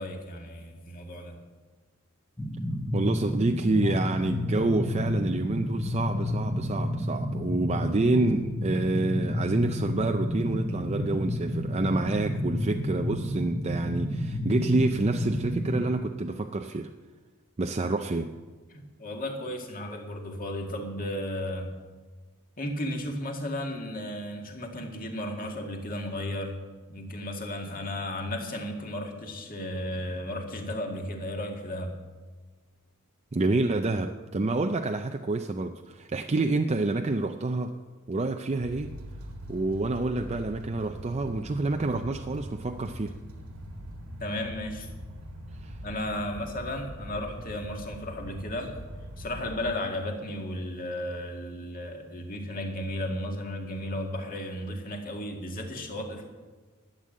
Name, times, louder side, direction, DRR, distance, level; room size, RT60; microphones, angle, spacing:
voice 1, 0.0-1.4 3.8-4.0 18.7-21.7 22.6-26.6 26.9-32.0 44.2-44.9 45.8-48.7 49.2-56.2, left 1 dB, 40° left, 2 dB, 2.0 m, -34 dB
sound 1, 2.4-15.9, left 1 dB, 10° left, 1.2 m, -30 dB
voice 2, 2.9-16.9 17.6-18.3 33.3-37.7 38.1-39.0 39.5-43.1 45.6-45.8, right 2 dB, 30° right, 5 dB, 0.5 m, -28 dB
sound 2, 38.6-49.8, equal, 80° right, 1.9 m, -42 dB
12.0 x 9.0 x 7.6 m, 1.4 s
head